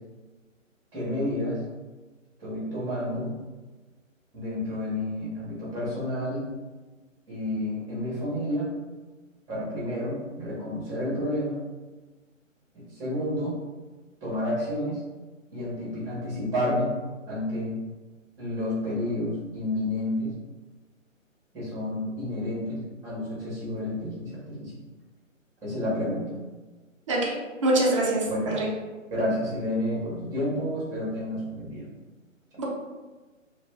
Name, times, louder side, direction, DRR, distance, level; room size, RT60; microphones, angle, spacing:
voice 1, 0.9-1.6 2.4-3.3 4.3-6.4 7.3-8.7 9.5-11.6 12.9-13.5 14.2-15.0 15.5-16.9 17.3-17.7 18.4-20.3 21.5-24.7 25.6-26.3 28.2-28.5 29.1-31.8, left 1 dB, 10° right, -7 dB, 1.0 m, -30 dB
voice 2, 27.6-28.7 32.6-32.7, right 1 dB, 25° right, -4 dB, 0.5 m, -24 dB
2.5 x 2.3 x 3.2 m, 1.2 s
figure-of-eight pair, 140°, 40 cm